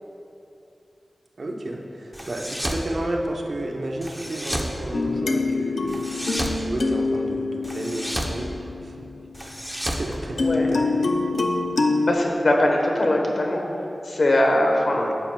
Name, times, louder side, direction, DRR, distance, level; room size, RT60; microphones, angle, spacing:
voice 1, 1.4-6.0 6.5-8.5 8.8-9.1 9.9-11.1 14.9-15.1, right 1 dB, 60° right, 1 dB, 0.7 m, -32 dB
sound 1, 2.1-2.9 4.0-4.7 5.9-6.6 7.6-8.4 9.3-10.9, equal, 5° right, 0.7 m, -31 dB
sound 2, 4.9-9.2 10.4-12.1, left 3 dB, 85° left, 0.5 m, -25 dB
voice 2, 10.3-10.7 12.1-13.6 14.0-15.1, left 1 dB, 65° left, 1 dB, 1.0 m, -21 dB
9.9 x 7.2 x 2.2 m, 2.8 s
wide cardioid pair, 60°, 0 cm